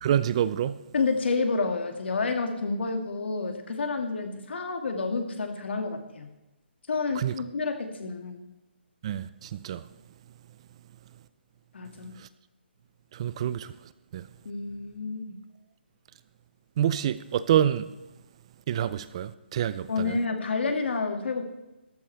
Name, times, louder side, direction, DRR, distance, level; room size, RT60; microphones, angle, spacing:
voice 1, 0.0-0.8 7.2-7.3 9.0-9.8 13.1-13.7 14.1-14.2 16.8-17.9 18.7-20.2, right 10 dB, 30° right, 0.4 m, -27 dB
voice 2, 0.9-6.3 6.9-8.4 11.7-12.2 14.5-15.3 19.9-21.4, left 4 dB, 70° left, 2.2 m, -29 dB
14.0 x 12.5 x 3.4 m
hypercardioid pair, 160°, 6 cm